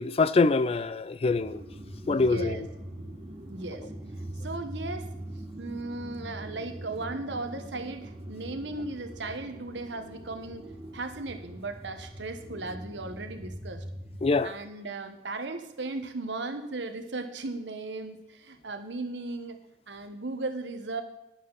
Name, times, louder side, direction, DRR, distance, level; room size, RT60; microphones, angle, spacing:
voice 1, 0.0-1.6 2.1-2.6 14.2-14.5, left 3 dB, 35° left, 0.4 m, -24 dB
sound 1, 1.3-14.4, right 1 dB, 25° right, 1.6 m, -42 dB
voice 2, 2.1-2.6 3.5-3.9 4.4-5.1 5.6-13.8 14.4-19.6 19.9-21.0, right 3 dB, 80° right, 1.2 m, -36 dB
11.0 x 10.0 x 4.0 m
head